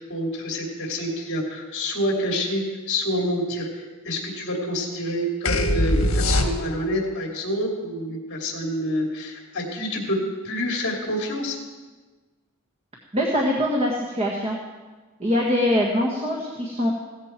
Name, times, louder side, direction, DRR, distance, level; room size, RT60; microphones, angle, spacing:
voice 1, 0.1-10.2 10.4-11.6, equal, 55° left, 0 dB, 2.6 m, -27 dB
sound 1, 5.5-7.0, left 1 dB, 75° left, 1.4 m, -22 dB
voice 2, 13.1-14.6 15.2-16.9, equal, 30° right, -1 dB, 1.6 m, -23 dB
16.5 x 13.5 x 4.5 m, 1.3 s
head